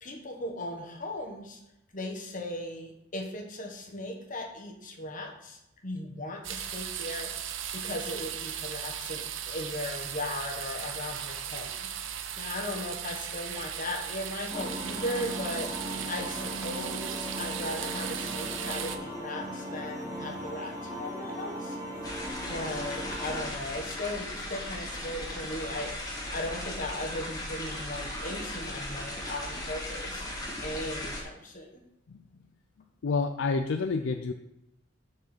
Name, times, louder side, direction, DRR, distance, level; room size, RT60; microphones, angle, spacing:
voice 1, 0.0-1.6 1.9-11.9 12.4-15.7 16.1-21.8 22.5-25.9 26.3-30.2 30.6-31.8, left 1 dB, 40° left, 1 dB, 1.4 m, -37 dB
sound 1, 6.4-19.0, right 9 dB, 70° right, 0.6 m, -37 dB
sound 2, 14.5-23.4, equal, 15° right, 1.9 m, -38 dB
sound 3, 22.0-31.2, left 1 dB, 20° left, 1.6 m, -37 dB
voice 2, 33.0-34.3, left 4 dB, 65° left, 7 dB, 0.4 m, -28 dB
7.2 x 4.7 x 6.1 m, 0.87 s
head